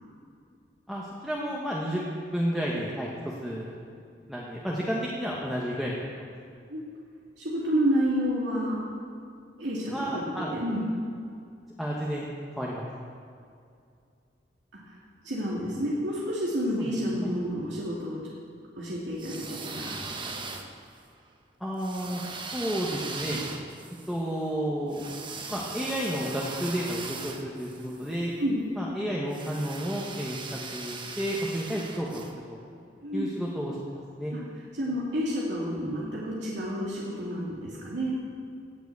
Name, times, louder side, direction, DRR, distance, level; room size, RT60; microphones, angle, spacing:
voice 1, 0.9-2.0 2.3-3.1 3.4-3.8 4.3-6.2 9.9-10.6 11.8-12.3 12.6-12.8 17.2-17.3 21.6-22.2 22.5-23.4 24.1-25.1 25.5-28.3 28.8-32.2 32.5-32.6 33.1-33.8 34.2-34.3, equal, ahead, -5 dB, 1.3 m, -31 dB
voice 2, 7.4-8.8 9.6-10.8 15.2-18.3 18.8-20.0 28.4-28.6 33.0-33.3 34.3-34.4 34.7-38.2, equal, 80° right, -6 dB, 2.5 m, -29 dB
sound 1, 19.1-21.0 21.8-28.2 29.3-32.3, right 4 dB, 25° right, 0.9 m, -39 dB
16.5 x 6.1 x 8.3 m, 2.4 s
head